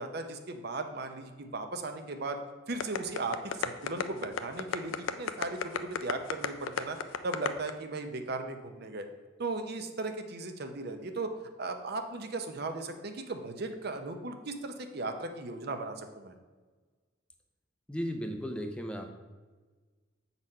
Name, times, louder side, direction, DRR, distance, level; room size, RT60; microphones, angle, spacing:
voice 1, 0.0-2.4 2.7-7.0 7.2-9.1 9.4-11.3 11.6-16.3, right 3 dB, 55° right, 6 dB, 0.6 m, -37 dB
sound 1, 2.8-7.7, left 7 dB, 80° left, 0.4 m, -32 dB
voice 2, 17.9-19.1, equal, 5° left, 4 dB, 0.4 m, -35 dB
7.4 x 4.1 x 5.4 m, 1.4 s
head